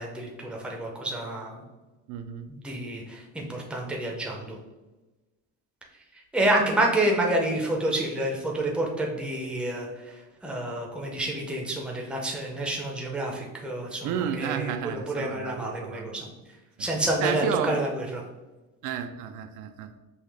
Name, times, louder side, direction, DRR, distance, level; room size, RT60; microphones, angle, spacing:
voice 1, 0.0-1.6 2.5-4.6 6.3-10.1 10.4-16.3 16.8-18.2, right 1 dB, 5° right, -1 dB, 0.6 m, -28 dB
voice 2, 2.1-2.5 14.0-16.1 17.2-17.8 18.8-19.9, right 8 dB, 70° right, 8 dB, 0.5 m, -31 dB
5.5 x 2.8 x 3.3 m, 1.1 s
cardioid pair, 165°, 32 cm